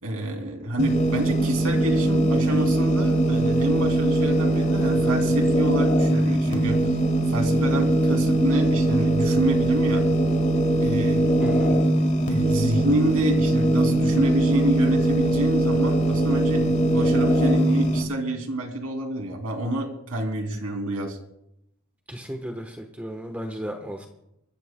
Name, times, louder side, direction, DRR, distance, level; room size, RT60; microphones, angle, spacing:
voice 1, 0.0-6.8 7.3-10.0 10.8-11.4 11.7-11.8 12.3-16.6 16.9-21.2, right 1 dB, 85° right, 4 dB, 2.6 m, -28 dB
sound 1, 0.8-18.0, right 1 dB, 35° left, 1.8 m, -21 dB
voice 2, 11.4-11.7 22.1-24.1, equal, 5° right, 4 dB, 1.0 m, -34 dB
25.5 x 14.5 x 2.2 m, 0.80 s
head